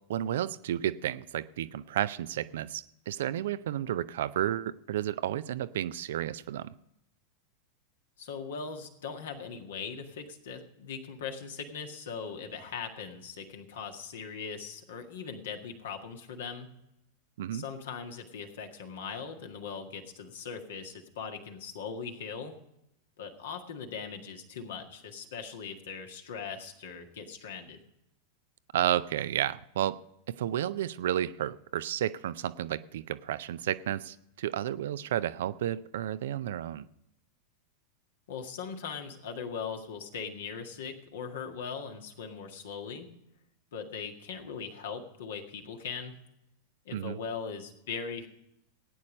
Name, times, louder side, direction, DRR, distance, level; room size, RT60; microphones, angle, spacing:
voice 1, 0.1-6.7 17.4-17.6 28.7-30.0 30.3-36.9 46.9-47.2, right 11 dB, 60° right, 15 dB, 0.5 m, -32 dB
voice 2, 8.2-16.7 17.5-22.6 23.2-27.8 38.3-43.1 43.7-46.1 46.9-48.3, left 6 dB, 60° left, 5 dB, 1.8 m, -40 dB
16.5 x 9.7 x 5.2 m, 0.82 s
figure-of-eight pair, 90°, 0 cm